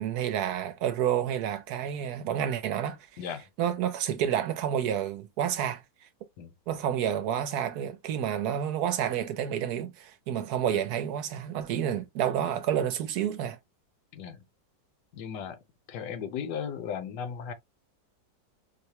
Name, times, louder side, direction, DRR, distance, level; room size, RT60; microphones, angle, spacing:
voice 1, 0.0-3.0 3.6-5.8 6.7-13.6, right 9 dB, 70° right, 1.0 m, -29 dB
voice 2, 3.2-3.5 6.4-6.5 10.7-10.8 14.1-14.4 15.1-15.6 15.9-17.5, left 7 dB, 70° left, 1.2 m, -36 dB
4.7 x 2.1 x 2.7 m
omnidirectional pair, 2.0 m